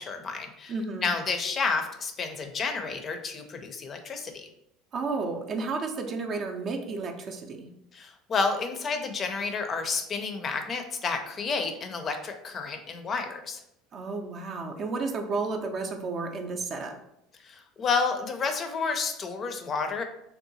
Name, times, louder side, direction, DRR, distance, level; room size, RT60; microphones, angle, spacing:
voice 1, 0.0-0.7 1.0-4.5 7.9-13.6 17.4-20.0, left 4 dB, 40° left, 6 dB, 0.4 m, -30 dB
voice 2, 0.7-1.1 4.9-7.7 13.9-17.0, right 3 dB, 45° right, 4 dB, 0.4 m, -32 dB
2.7 x 2.2 x 2.6 m, 0.81 s
hypercardioid pair, 80°, 0 cm